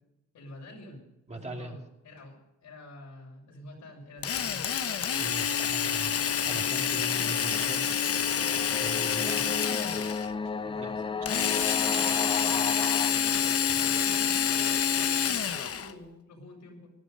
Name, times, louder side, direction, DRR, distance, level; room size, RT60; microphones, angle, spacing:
voice 1, 0.3-1.0 1.3-2.4 2.6-4.6 10.6-12.6 13.0-16.9, left 1 dB, 70° left, 0 dB, 6.6 m, -48 dB
voice 2, 1.3-1.8 5.1-7.8 8.4-9.5 10.8-10.9 13.6-13.7, right 2 dB, 20° right, 2 dB, 2.4 m, -40 dB
Drill, 4.2-10.3 11.3-15.9, left 8 dB, 50° left, 1.1 m, -27 dB
sound 1, 6.4-13.1, left 4 dB, 15° left, 0.6 m, -35 dB
Human voice / Cough, 7.6-7.8 8.3-8.8 9.3-12.2 12.9-13.7 14.4-14.5 15.2-15.6, right 5 dB, 55° right, 6.5 m, -53 dB
18.5 x 11.5 x 5.5 m, 0.89 s
cardioid pair, 90°, 30 cm